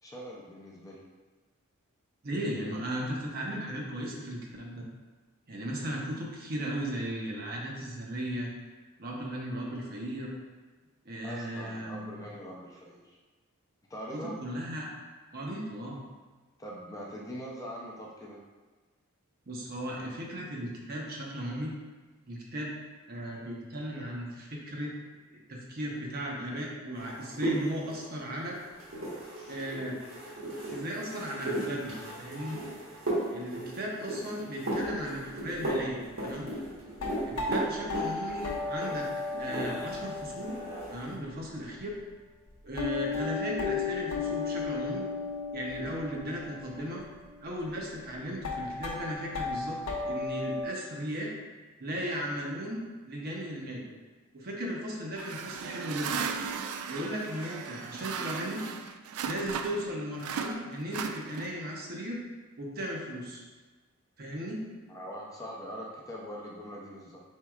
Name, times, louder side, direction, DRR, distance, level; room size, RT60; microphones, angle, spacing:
voice 1, 0.0-1.0 11.2-13.2 13.9-14.3 16.6-18.4 37.2-37.4 64.9-67.2, equal, 15° left, -4 dB, 0.5 m, -42 dB
voice 2, 2.2-4.9 5.5-8.5 9.0-10.3 11.0-12.2 14.1-14.9 15.3-16.0 19.5-21.7 22.2-22.7 23.1-24.9 25.5-28.6 29.5-30.0 30.7-32.6 33.3-36.5 37.3-39.1 39.4-40.6 40.9-42.0 42.6-45.0 45.5-47.0 47.4-49.8 50.1-51.3 51.8-52.8 53.1-53.8 54.3-56.2 56.9-58.6 59.2-62.2 62.6-63.4 64.2-64.6, equal, 45° right, -2 dB, 0.8 m, -36 dB
sound 1, 26.9-40.0 40.3-41.0, right 1 dB, 65° right, 1.4 m, -36 dB
sound 2, 34.7-41.2 41.9-42.0 42.5-50.7, left 4 dB, 70° left, 0.6 m, -36 dB
sound 3, 55.2-59.9 60.2-61.7, right 6 dB, 80° right, 0.3 m, -36 dB
4.5 x 4.0 x 2.4 m, 1.3 s
head